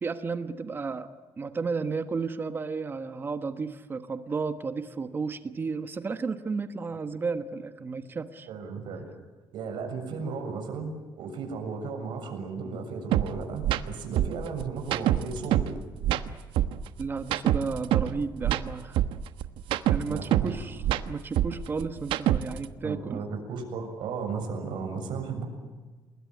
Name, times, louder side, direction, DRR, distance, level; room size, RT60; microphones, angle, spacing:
voice 1, 0.0-8.5 17.0-19.0 19.9-23.2, right 4 dB, 25° right, 10 dB, 1.2 m, -33 dB
voice 2, 8.5-9.0 9.5-15.8 20.1-20.6 22.8-25.4, right 5 dB, 65° right, 4 dB, 7.0 m, -35 dB
sound 1, 13.1-13.3 13.6-13.8 14.2-15.7 16.0-18.1 18.4-20.5 20.8-22.7, right 12 dB, 85° right, 1.3 m, -25 dB
28.5 x 21.0 x 9.4 m, 1.3 s
cardioid pair, 160°, 9 cm